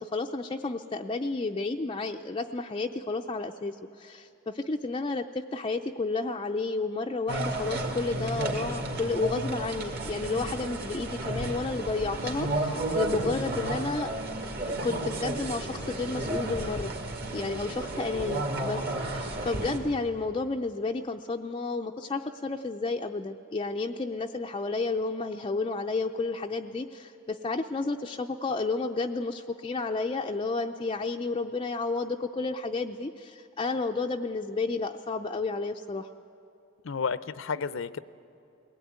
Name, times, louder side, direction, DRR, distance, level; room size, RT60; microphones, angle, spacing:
voice 1, 0.0-14.1 14.7-16.9 17.3-36.1, left 3 dB, 25° left, 4 dB, 0.5 m, -31 dB
sound 1, 7.3-19.8, right 1 dB, 50° right, 2.6 m, -32 dB
voice 2, 13.3-13.7 36.8-38.0, left 5 dB, 65° left, 16 dB, 0.6 m, -32 dB
21.5 x 17.0 x 9.4 m, 2.9 s
head